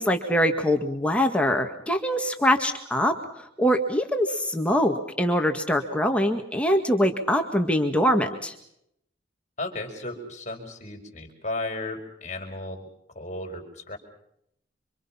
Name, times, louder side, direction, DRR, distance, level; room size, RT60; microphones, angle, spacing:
voice 1, 0.0-8.5, equal, 5° left, 4 dB, 2.0 m, -23 dB
voice 2, 9.6-12.9 13.1-14.0, left 2 dB, 40° left, 2 dB, 4.8 m, -34 dB
27.0 x 26.5 x 5.8 m, 0.74 s
head